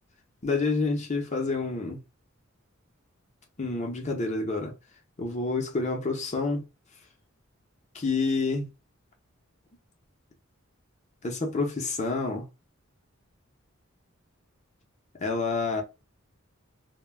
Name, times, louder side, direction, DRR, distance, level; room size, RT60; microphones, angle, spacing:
voice 1, 0.4-2.0 3.6-4.7 5.2-6.6 7.9-8.7 11.2-12.4 15.2-15.8, left 3 dB, 35° left, 0.7 m, -28 dB
2.2 x 2.2 x 3.3 m
head